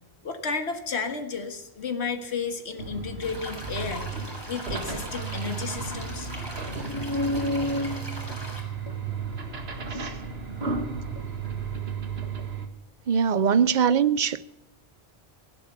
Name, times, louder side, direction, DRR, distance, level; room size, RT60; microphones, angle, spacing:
voice 1, 0.2-4.1 4.5-6.3, left 5 dB, 85° left, 1.9 m, -32 dB
sound 1, 2.8-12.7, right 3 dB, 75° right, 2.1 m, -32 dB
sound 2, 3.2-8.6, equal, 25° right, 3.6 m, -40 dB
sound 3, 5.6-12.0, right 1 dB, 30° left, 1.2 m, -44 dB
voice 2, 13.1-14.4, right 7 dB, 50° right, 0.7 m, -22 dB
17.0 x 11.5 x 6.8 m
omnidirectional pair, 1.1 m